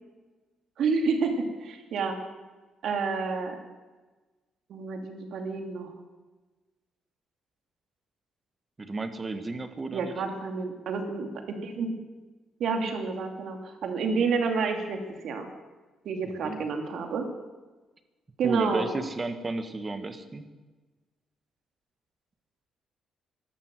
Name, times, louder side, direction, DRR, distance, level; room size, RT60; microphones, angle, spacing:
voice 1, 0.8-2.2 2.8-3.6 4.7-5.9 9.9-12.0 12.6-15.5 16.0-17.3 18.4-18.9, right 4 dB, 70° right, 4 dB, 2.7 m, -29 dB
voice 2, 8.8-10.1 16.4-16.6 18.4-20.5, right 3 dB, 25° right, 8 dB, 1.6 m, -33 dB
14.5 x 12.0 x 7.7 m, 1.2 s
cardioid pair, 90°, 0 cm